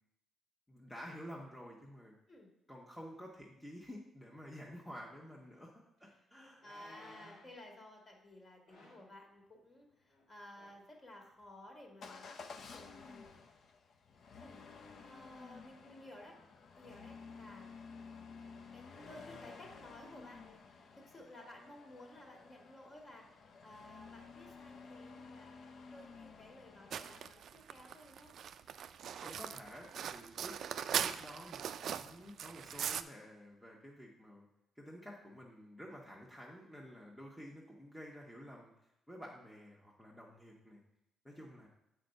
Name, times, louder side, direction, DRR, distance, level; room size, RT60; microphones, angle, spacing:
voice 1, 0.7-2.2 2.7-5.7 6.0-6.6 29.2-30.6 31.0-34.5 34.8-38.7 39.1-40.8 41.2-41.7, equal, 5° left, -3 dB, 1.1 m, -51 dB
sound 1, 5.6-5.7 6.6-7.6 8.7-9.1 10.1-10.3 10.5-10.9 11.4-11.5, left 1 dB, 80° left, 2.2 m, -59 dB
voice 2, 6.6-12.3 12.7-13.4 14.4-14.6 15.0-16.4 16.8-17.7 18.7-20.6 21.0-23.3 23.6-25.5 25.9-28.3 30.1-30.3 41.3-41.5, left 1 dB, 35° left, 1 dB, 1.8 m, -55 dB
Motor vehicle (road) / Engine starting / Accelerating revving vroom, 12.0-27.3, left 4 dB, 60° left, 0.7 m, -53 dB
sound 2, 26.9-33.0, right 8 dB, 65° right, 0.3 m, -40 dB
7.4 x 4.6 x 5.3 m, 0.86 s
cardioid pair, 90°, 0 cm